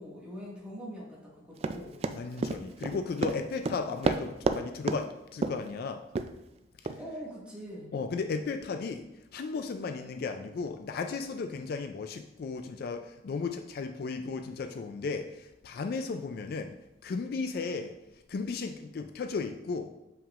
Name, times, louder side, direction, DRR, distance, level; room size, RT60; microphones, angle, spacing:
voice 1, 0.0-2.0 7.0-7.9, equal, 5° right, -6 dB, 1.8 m, -43 dB
Run, 1.6-4.6 4.9-5.0 5.4-5.7 6.1-6.3 6.9-7.0, right 3 dB, 35° right, 0.3 m, -29 dB
voice 2, 2.1-6.0 6.8-6.9 7.9-16.8 17.0-18.0 18.3-19.9, left 4 dB, 55° left, 7 dB, 0.3 m, -35 dB
7.1 x 5.6 x 2.5 m, 0.92 s
head